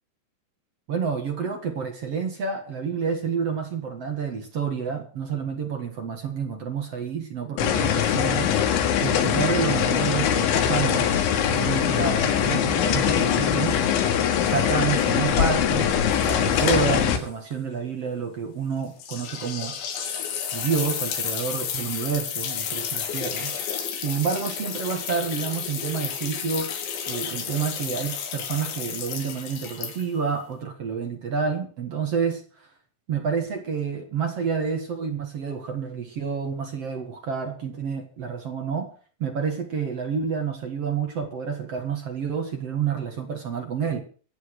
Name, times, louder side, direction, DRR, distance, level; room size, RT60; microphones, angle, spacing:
voice 1, 0.9-8.5 9.0-11.1 11.5-13.8 14.4-15.9 16.2-19.8 20.5-23.5 24.0-26.8 27.1-32.4 33.1-38.9 39.2-44.0, right 6 dB, 50° right, 3 dB, 1.9 m, -29 dB
sound 1, 7.6-17.2, left 9 dB, 90° left, 4.0 m, -22 dB
sound 2, 16.1-17.2 17.5-17.6 19.0-30.3, left 8 dB, 75° left, 4.5 m, -32 dB
24.5 x 8.5 x 4.8 m, 0.42 s
omnidirectional pair, 5.3 m